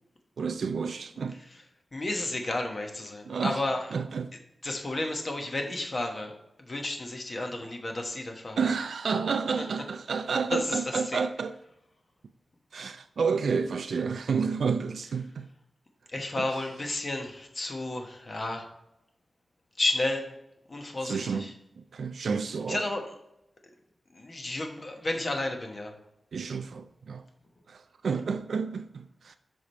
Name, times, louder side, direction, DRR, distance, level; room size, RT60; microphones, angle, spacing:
voice 1, 0.4-1.4 3.3-3.6 3.9-4.3 8.6-11.5 12.7-15.5 16.4-16.5 21.0-21.5 21.8-22.8 26.3-27.2 27.7-29.4, right 5 dB, 85° right, 0.3 m, -30 dB
voice 2, 1.9-3.9 4.6-6.3 6.6-8.7 10.5-11.2 16.1-18.7 19.8-20.3 20.7-21.5 22.7-23.0 24.1-25.9, left 2 dB, 40° left, 1.1 m, -32 dB
6.0 x 4.9 x 4.2 m
wide cardioid pair, 100°, 0 cm